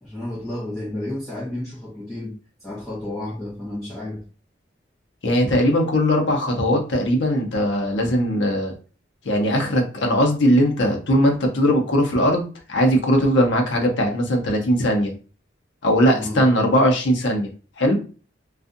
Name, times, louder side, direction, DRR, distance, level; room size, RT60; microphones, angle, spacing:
voice 1, 0.0-4.2 16.1-16.4, left 1 dB, ahead, 0.9 m, -32 dB
voice 2, 5.2-8.7 9.2-15.1 15.8-17.5 17.8-17.9, equal, 80° left, 0.7 m, -19 dB
2.6 x 2.3 x 2.4 m
head